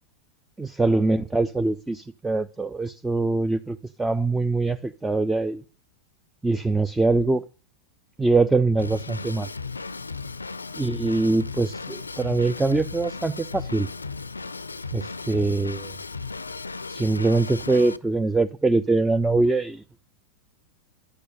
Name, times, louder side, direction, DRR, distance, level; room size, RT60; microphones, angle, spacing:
voice 1, 0.6-5.6 6.4-7.4 8.2-9.5 10.8-13.9 14.9-15.9 16.9-19.8, right 3 dB, 5° right, 0.7 m, -23 dB
Drum kit / Drum, 8.8-18.0, left 4 dB, 80° left, 0.6 m, -35 dB
11.0 x 8.4 x 9.9 m
figure-of-eight pair, 90°, 0 cm